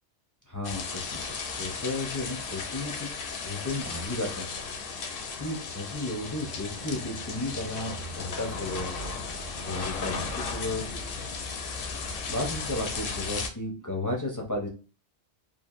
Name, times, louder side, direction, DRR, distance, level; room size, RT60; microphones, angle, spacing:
voice 1, 0.5-1.2 1.6-4.4 5.4-8.9 9.6-10.8 12.3-14.7, left 2 dB, 25° left, -1 dB, 0.4 m, -33 dB
sound 1, 0.6-13.5, left 4 dB, 60° left, 0.7 m, -35 dB
3.1 x 2.4 x 2.3 m, 0.36 s
omnidirectional pair, 1.2 m